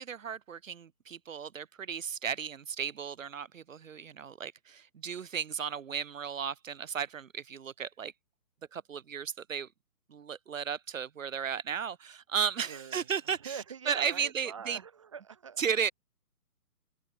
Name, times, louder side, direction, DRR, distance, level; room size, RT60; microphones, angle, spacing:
voice 1, 0.0-8.1 8.7-9.7 10.1-13.6 13.9-14.8 15.6-15.9, right 7 dB, 55° right, 1.1 m, -34 dB
voice 2, 12.6-15.6, right 7 dB, 20° right, 1.0 m, -44 dB
hypercardioid pair, 160°, 47 cm